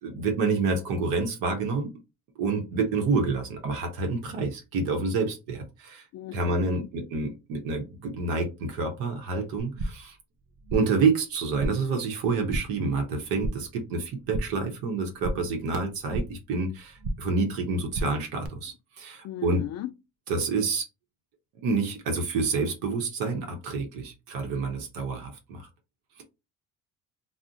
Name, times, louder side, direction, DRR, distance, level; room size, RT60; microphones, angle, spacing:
voice 1, 0.0-1.9 2.4-6.1 6.3-10.2 10.7-19.6 20.3-20.8 21.6-25.7, right 4 dB, 80° right, 0.8 m, -28 dB
voice 2, 6.1-6.9 19.2-19.9, left 12 dB, 50° left, 0.4 m, -36 dB
sound 1, 9.6-10.1 10.4-11.0 11.3-12.0 12.2-12.8 13.1-13.8 14.1-14.7 14.9-16.5 16.8-17.4 17.7-18.5, right 2 dB, 45° right, 0.6 m, -34 dB
2.4 x 2.1 x 3.7 m
cardioid pair, 100°, 35 cm